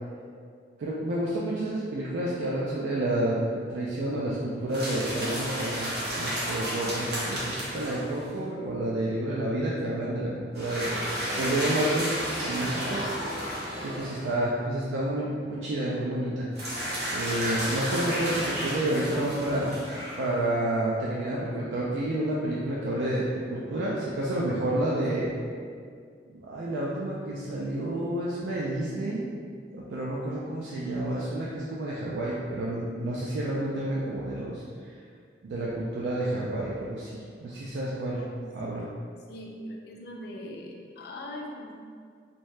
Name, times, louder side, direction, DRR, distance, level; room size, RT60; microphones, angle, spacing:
voice 1, 0.8-13.0 13.6-16.5 17.1-19.8 20.2-25.3 26.3-29.2 29.7-34.6 35.4-38.2 38.5-38.9, right 1 dB, 80° right, -6 dB, 0.4 m, -30 dB
sound 1, 4.7-8.3 10.5-14.4 16.5-20.5, equal, 60° right, 0.8 m, -32 dB
voice 2, 38.1-38.5 39.3-41.8, left 1 dB, 55° left, 0 dB, 0.4 m, -41 dB
2.7 x 2.1 x 3.1 m, 2.1 s
head